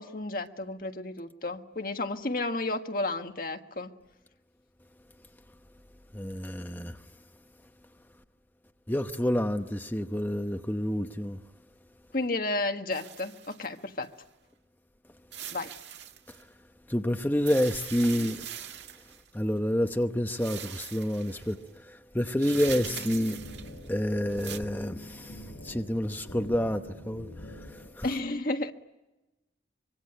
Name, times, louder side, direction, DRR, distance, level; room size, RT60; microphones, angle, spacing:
voice 1, 0.0-3.9 12.1-14.1 15.5-15.7 28.0-28.7, left 2 dB, 55° left, 1.6 m, -32 dB
voice 2, 6.1-7.0 8.9-11.4 16.9-18.5 19.3-23.4 23.9-28.1, equal, 10° left, 0.9 m, -29 dB
sound 1, 12.9-14.2 15.3-16.4 17.3-19.3 20.3-21.6 22.4-23.9 24.3-24.6, right 9 dB, 80° right, 1.8 m, -42 dB
sound 2, 22.5-27.9, left 1 dB, 85° left, 6.2 m, -44 dB
25.0 x 24.5 x 9.0 m
head